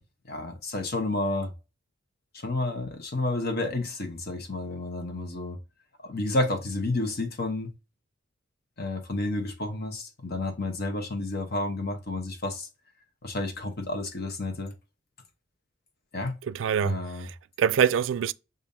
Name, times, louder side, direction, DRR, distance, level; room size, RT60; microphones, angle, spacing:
voice 1, 0.3-1.5 2.3-5.6 6.0-7.7 8.8-12.7 13.2-14.7 16.1-16.4 16.8-17.3, left 2 dB, 55° left, 1.0 m, -30 dB
voice 2, 16.5-18.3, right 7 dB, 80° right, 0.3 m, -25 dB
6.9 x 2.6 x 2.7 m
head